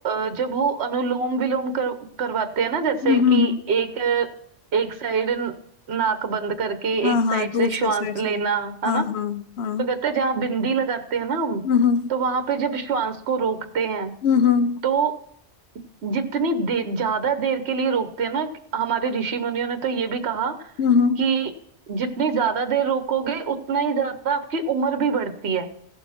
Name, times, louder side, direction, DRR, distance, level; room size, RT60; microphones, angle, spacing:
voice 1, 0.0-4.3 4.7-5.5 5.9-9.0 9.8-11.6 12.1-14.1 14.8-15.1 16.0-20.6 21.2-21.5 21.9-25.7, right 5 dB, 70° right, 8 dB, 1.3 m, -24 dB
voice 2, 3.0-3.6 7.0-8.5 8.8-9.9 11.6-12.1 14.2-14.8 20.8-21.2, left 6 dB, 70° left, 11 dB, 1.0 m, -21 dB
15.5 x 7.1 x 4.3 m, 0.70 s
omnidirectional pair, 1.2 m